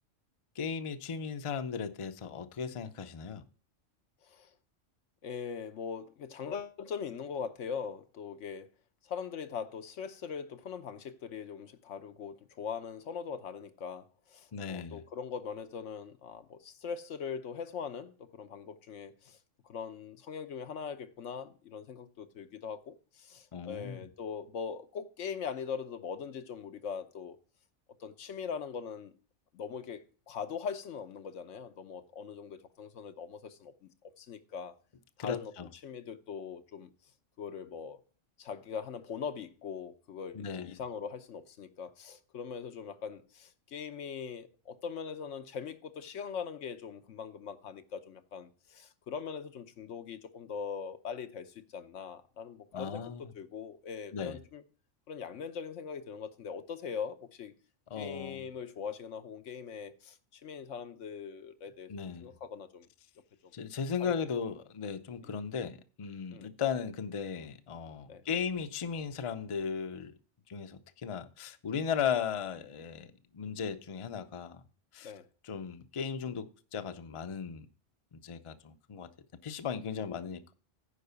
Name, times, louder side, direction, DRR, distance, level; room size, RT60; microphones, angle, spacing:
voice 1, 0.6-3.4 14.5-15.0 23.5-24.1 35.2-35.7 40.3-40.8 52.7-53.3 54.1-54.4 57.9-58.5 61.9-62.3 63.5-70.2 70.5-74.6 74.9-75.1 75.4-77.7 78.1-79.1 79.4-80.5, left 6 dB, 35° left, 0.5 m, -36 dB
voice 2, 5.2-8.7 9.0-19.4 19.7-27.4 28.0-29.1 29.5-34.7 35.2-35.5 35.8-36.9 37.4-38.0 38.4-54.6 55.1-57.5 57.9-62.9 64.0-64.1 66.3-66.5 68.1-68.2 75.0-75.3 79.8-80.1, left 6 dB, 80° left, 1.2 m, -41 dB
10.0 x 4.8 x 6.7 m
omnidirectional pair, 1.2 m